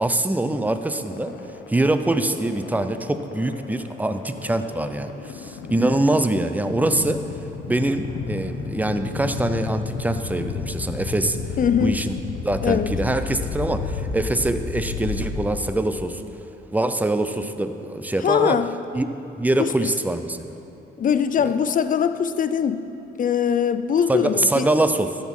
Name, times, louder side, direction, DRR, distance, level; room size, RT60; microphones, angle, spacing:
voice 1, 0.0-1.3 1.7-7.2 7.7-11.4 11.8-12.2 12.4-16.2 16.7-18.6 18.9-19.1 19.4-20.6 24.1-25.2, right 1 dB, 10° right, 9 dB, 0.6 m, -24 dB
sound 1, 0.9-16.0, left 5 dB, 80° left, 0.8 m, -33 dB
voice 2, 11.6-12.0 12.6-12.9 18.2-18.7 19.6-19.9 21.0-22.8 23.2-24.7, left 7 dB, 45° left, 12 dB, 0.5 m, -22 dB
13.0 x 6.4 x 5.5 m, 3.0 s
cardioid pair, 90°, 20 cm